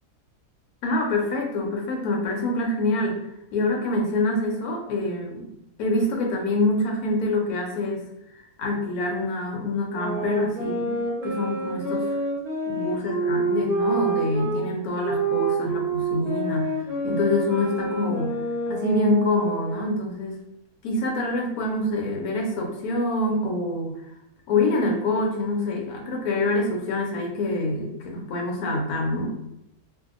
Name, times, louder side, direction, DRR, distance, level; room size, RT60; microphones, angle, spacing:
voice 1, 0.8-3.2 3.5-5.5 5.8-8.0 8.4-12.1 12.7-16.7 17.0-18.4 18.7-20.4 20.8-24.0 24.5-29.3, left 2 dB, 70° left, 0 dB, 1.1 m, -26 dB
sound 1, 9.9-14.6 15.0-20.0, right 2 dB, 35° right, 0.7 m, -28 dB
2.7 x 2.4 x 2.4 m, 0.82 s
omnidirectional pair, 1.7 m